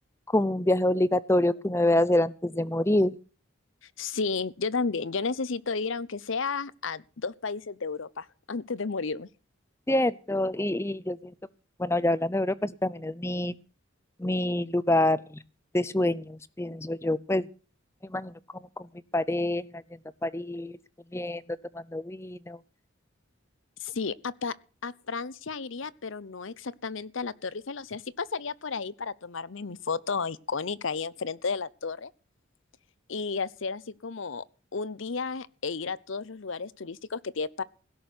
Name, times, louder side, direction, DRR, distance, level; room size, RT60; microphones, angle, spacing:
voice 1, 0.3-3.2 9.9-11.3 11.8-13.5 14.2-15.2 15.7-17.4 18.1-18.3 18.8-18.9 19.1-19.7 20.2-20.8 21.1-21.4 21.7-22.6, left 1 dB, 15° left, 0.6 m, -26 dB
voice 2, 4.0-9.3 23.8-24.5 24.8-32.1 33.1-34.4 34.7-37.6, left 4 dB, 70° left, 0.8 m, -33 dB
17.0 x 6.3 x 9.4 m
head